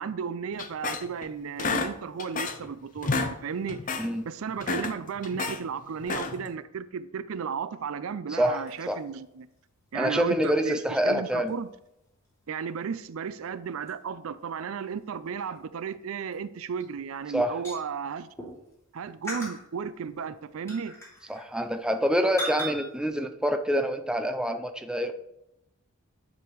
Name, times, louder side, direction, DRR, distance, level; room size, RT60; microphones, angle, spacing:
voice 1, 0.0-3.9 4.3-9.5 9.9-11.7 12.5-18.3 18.9-20.9, right 6 dB, 75° right, 0.4 m, -34 dB
sound 1, 0.6-1.3 1.6-2.7 3.0-3.4 3.7-4.1 4.5-5.6 6.0-6.5, left 4 dB, 40° left, 0.6 m, -30 dB
voice 2, 8.3-9.0 9.9-11.5 17.3-17.5 21.3-25.1, equal, 5° right, 0.5 m, -26 dB
sound 2, 8.4-18.8 19.2-22.1 22.4-23.1, right 1 dB, 15° left, 3.0 m, -43 dB
11.0 x 5.1 x 4.6 m
head